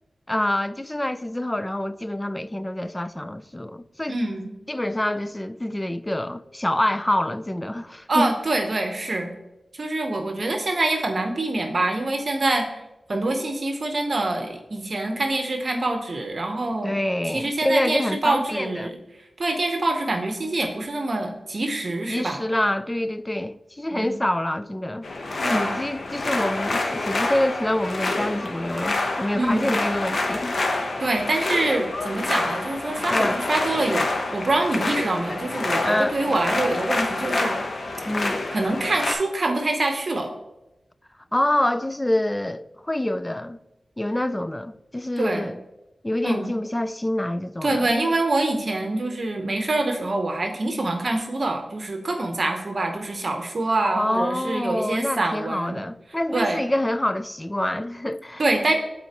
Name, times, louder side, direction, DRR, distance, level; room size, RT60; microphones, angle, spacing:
voice 1, 0.3-4.2 4.7-8.3 16.8-19.0 22.1-25.1 25.5-30.6 33.1-33.4 35.8-36.2 38.0-38.4 41.3-43.6 44.0-45.6 46.0-47.9 54.0-58.4, left 1 dB, 15° left, 0.3 m, -26 dB
voice 2, 4.1-4.5 8.1-9.3 9.8-12.8 13.1-16.9 17.3-19.0 19.4-22.4 23.9-24.1 25.4-25.8 29.3-29.8 31.0-37.6 38.5-40.3 45.2-45.5 46.2-46.5 47.6-55.8 56.3-56.6 58.4-58.7, right 2 dB, 55° right, 0.9 m, -25 dB
sound 1, 25.0-39.1, left 2 dB, 65° left, 0.9 m, -27 dB
11.0 x 4.1 x 2.9 m
wide cardioid pair, 75°, 0 cm